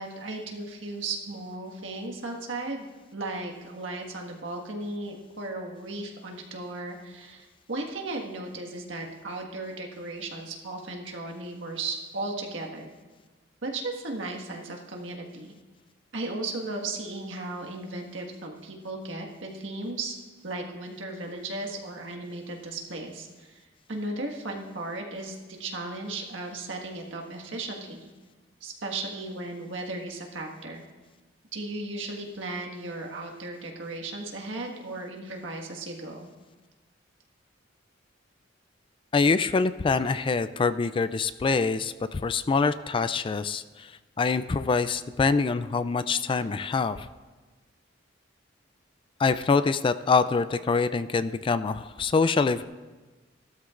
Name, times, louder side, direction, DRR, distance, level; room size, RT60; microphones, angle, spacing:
voice 1, 0.0-12.9 13.6-15.5 16.1-20.2 20.4-23.6 23.9-28.1 28.6-30.8 31.5-36.3, right 2 dB, 75° right, 1 dB, 1.6 m, -36 dB
voice 2, 39.1-43.9 44.2-47.1 49.2-52.6, left 4 dB, 25° left, 13 dB, 0.3 m, -25 dB
16.0 x 13.0 x 2.5 m, 1.3 s
head